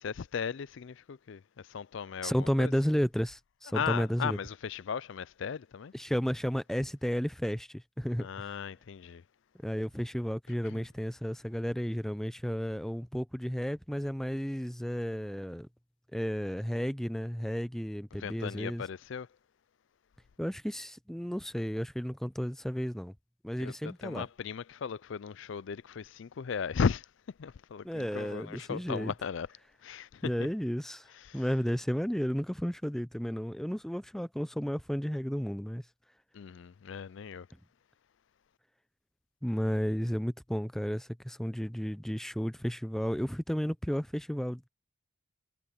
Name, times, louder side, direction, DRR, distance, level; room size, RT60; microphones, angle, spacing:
voice 1, 0.0-2.7 3.7-5.9 8.2-9.2 10.7-10.8 18.2-19.3 23.6-27.1 27.4-29.5 29.8-30.3 31.3-31.4 36.3-37.5, left 6 dB, 60° left, 0.4 m, -36 dB
voice 2, 2.2-4.4 5.9-8.5 9.6-15.7 16.1-18.8 20.4-23.1 23.4-24.3 27.8-29.1 30.2-35.8 39.4-44.7, equal, ahead, 0.5 m, -33 dB
head